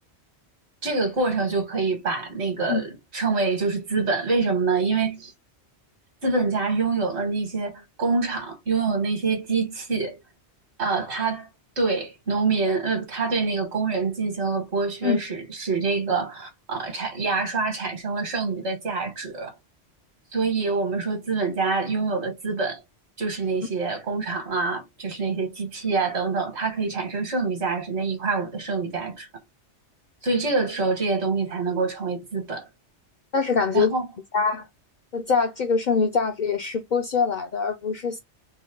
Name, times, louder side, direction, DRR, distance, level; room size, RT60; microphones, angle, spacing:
voice 1, 0.8-5.3 6.2-10.2 10.8-11.5 11.8-19.5 20.3-22.8 23.2-29.3 30.2-32.7 33.7-34.1, right 4 dB, 70° right, 1.8 m, -26 dB
voice 2, 33.3-33.9 34.3-34.7 35.1-38.2, left 5 dB, 55° left, 0.5 m, -23 dB
4.1 x 2.1 x 3.7 m
omnidirectional pair, 1.2 m